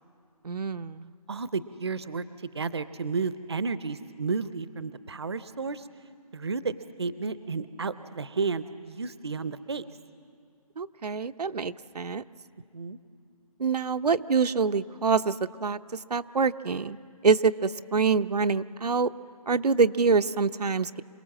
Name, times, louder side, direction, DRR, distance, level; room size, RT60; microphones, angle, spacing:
voice 1, 0.4-1.1 10.8-12.2 13.6-15.3 15.6-15.8 16.1-17.0 17.2-19.1 19.5-21.0, right 5 dB, 85° right, 10 dB, 0.7 m, -25 dB
voice 2, 1.3-5.9 6.3-6.7 7.0-9.8 12.7-13.0, right 4 dB, 45° right, 14 dB, 0.6 m, -32 dB
27.0 x 18.5 x 7.5 m, 2.3 s
figure-of-eight pair, 175°, 20 cm